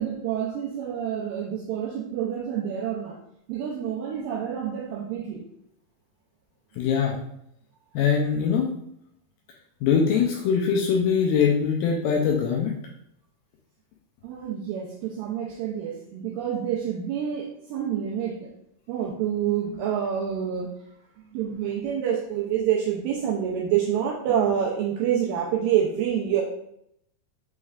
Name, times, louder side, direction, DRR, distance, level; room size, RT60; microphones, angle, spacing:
voice 1, 0.0-3.2 3.5-5.4 14.2-18.5 18.9-20.7 21.3-26.4, right 9 dB, 90° right, -3 dB, 2.0 m, -27 dB
voice 2, 6.8-7.2 7.9-8.7 9.8-12.7, left 6 dB, 85° left, -1 dB, 2.0 m, -22 dB
6.2 x 3.2 x 2.4 m, 0.75 s
omnidirectional pair, 4.6 m